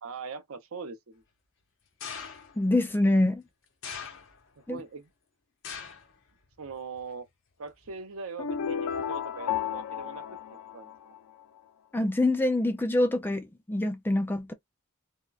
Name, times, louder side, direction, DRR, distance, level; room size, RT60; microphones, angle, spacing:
voice 1, 0.0-1.2 4.7-5.1 6.6-7.3 7.6-10.3 10.7-11.1, right 5 dB, 65° right, 0.7 m, -41 dB
sound 1, 2.0-2.7 3.8-4.6 5.6-6.1 6.5-7.0 7.9-8.0, left 6 dB, 65° left, 0.9 m, -41 dB
voice 2, 2.6-3.4 4.7-4.8 11.9-14.5, left 1 dB, 10° left, 0.3 m, -25 dB
sound 2, 8.4-11.4, left 8 dB, 80° left, 0.4 m, -33 dB
3.5 x 2.1 x 2.3 m
head